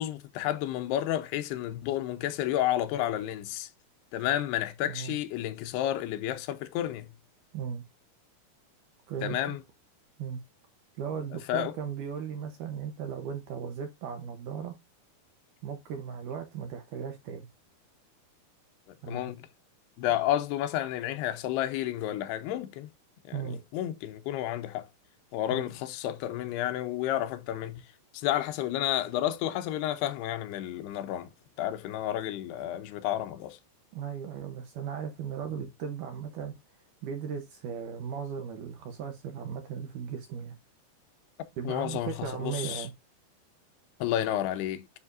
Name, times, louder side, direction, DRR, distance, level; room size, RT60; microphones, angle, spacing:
voice 1, 0.0-3.7 4.1-7.1 9.2-9.6 11.5-11.7 18.9-19.5 20.0-22.9 23.3-24.9 25.3-27.9 28.1-31.3 31.6-33.6 35.6-35.7 41.6-42.9 44.0-44.9, left 12 dB, 90° left, 2.8 m, -31 dB
voice 2, 9.1-9.6 10.2-10.4 11.0-14.8 15.6-17.5 19.0-19.3 23.3-23.6 25.5-25.6 33.9-36.5 37.0-40.6 41.6-42.9, right 7 dB, 70° right, 2.0 m, -37 dB
9.8 x 4.8 x 2.5 m
omnidirectional pair, 4.6 m